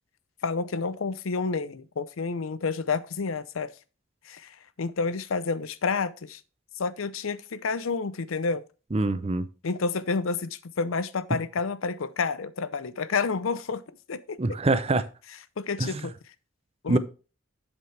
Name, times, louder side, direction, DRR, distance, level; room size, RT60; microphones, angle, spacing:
voice 1, 0.4-3.7 4.3-6.4 6.8-8.6 9.6-13.8 14.1-14.4 15.6-16.1 16.8-17.0, left 4 dB, 85° left, 0.6 m, -29 dB
voice 2, 8.9-9.5 14.4-15.0 15.8-16.1 16.9-17.0, right 2 dB, 30° right, 0.6 m, -24 dB
8.0 x 7.4 x 3.3 m
head